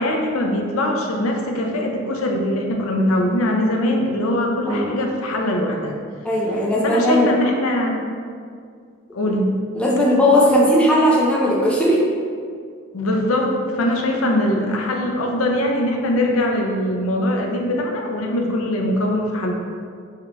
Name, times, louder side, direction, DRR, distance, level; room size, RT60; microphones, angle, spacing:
voice 1, 0.0-5.9 6.8-8.0 9.1-9.5 12.9-19.5, left 1 dB, 80° left, 1 dB, 0.5 m, -22 dB
voice 2, 6.2-7.3 9.7-12.0, equal, 5° left, -5 dB, 0.5 m, -17 dB
4.7 x 3.3 x 2.2 m, 2.1 s
head